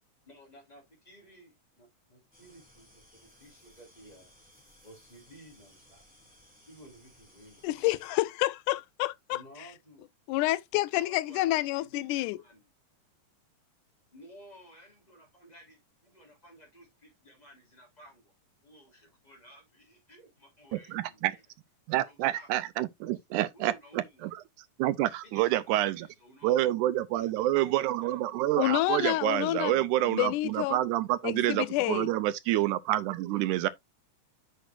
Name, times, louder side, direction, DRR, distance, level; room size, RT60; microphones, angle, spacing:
voice 1, 0.2-4.3 4.8-6.1 6.7-8.0 9.3-10.1 10.9-12.6 14.1-18.3 18.6-21.4 22.0-22.5 23.0-24.3 25.2-26.8 27.1-28.2 33.3-33.7, equal, 15° left, 3.2 m, -55 dB
sound 1, 2.3-8.1, left 1 dB, 5° right, 3.6 m, -60 dB
voice 2, 7.6-9.4 10.3-12.4 28.5-29.7 30.1-30.8 31.2-32.1, left 17 dB, 90° left, 2.1 m, -28 dB
voice 3, 20.7-21.3 21.9-23.7 24.8-26.1 26.4-33.7, right 15 dB, 90° right, 2.1 m, -28 dB
8.1 x 6.2 x 2.5 m
omnidirectional pair, 3.5 m